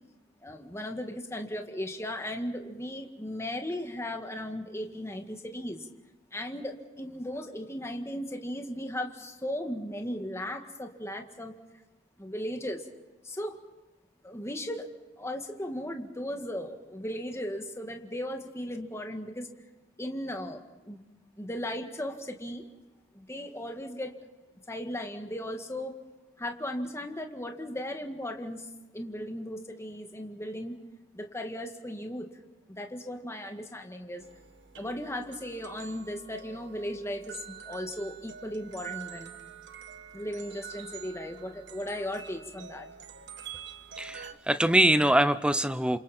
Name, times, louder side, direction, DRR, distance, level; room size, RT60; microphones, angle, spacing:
voice 1, 0.4-5.9 6.3-11.5 12.2-12.8 13.2-13.6 14.2-14.9 15.2-19.5 20.0-21.0 21.4-22.6 23.1-24.1 24.7-25.9 26.4-28.7 28.9-30.8 31.1-32.3 32.7-34.3 34.8-39.3 40.1-42.9, left 1 dB, 15° left, 4 dB, 2.0 m, -36 dB
sound 1, 34.2-44.3, right 8 dB, 65° right, 1.4 m, -46 dB
voice 2, 44.0-46.0, right 1 dB, 5° right, 12 dB, 0.8 m, -23 dB
29.5 x 27.0 x 4.5 m, 1.1 s
head